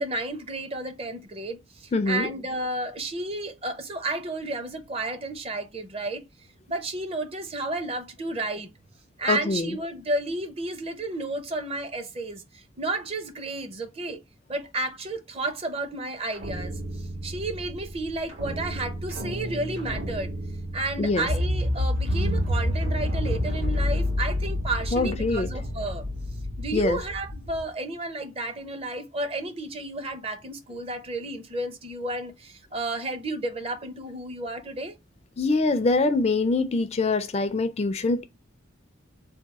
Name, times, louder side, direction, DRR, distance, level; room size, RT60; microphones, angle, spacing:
voice 1, 0.0-6.2 6.7-8.7 9.2-14.2 14.5-20.3 20.7-26.0 26.6-34.9, right 2 dB, 30° right, 0.5 m, -32 dB
voice 2, 1.9-2.3 9.3-9.7 21.0-21.3 24.9-25.5 26.7-27.0 35.4-38.2, left 3 dB, 30° left, 0.4 m, -24 dB
sound 1, 16.3-27.6, left 1 dB, 80° right, 1.9 m, -29 dB
3.5 x 2.2 x 4.0 m
head